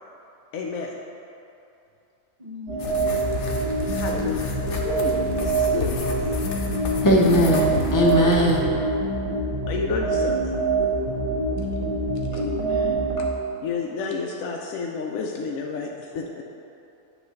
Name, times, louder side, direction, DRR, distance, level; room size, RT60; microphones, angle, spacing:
voice 1, 0.5-1.0 3.9-6.5 9.7-10.6 12.3-12.4 13.2-13.3 13.6-16.4, left 4 dB, 85° left, 0 dB, 1.0 m, -31 dB
voice 2, 2.4-3.1 7.2-7.8 12.3-13.1, left 2 dB, 35° right, -4 dB, 0.8 m, -34 dB
sound 1, 2.7-13.2, right 3 dB, 70° right, 2.4 m, -25 dB
sound 2, 2.8-8.6, left 5 dB, 65° left, 1.0 m, -32 dB
voice 3, 7.0-8.7, equal, 20° left, -3 dB, 0.7 m, -19 dB
8.0 x 3.2 x 6.3 m, 2.7 s
omnidirectional pair, 1.4 m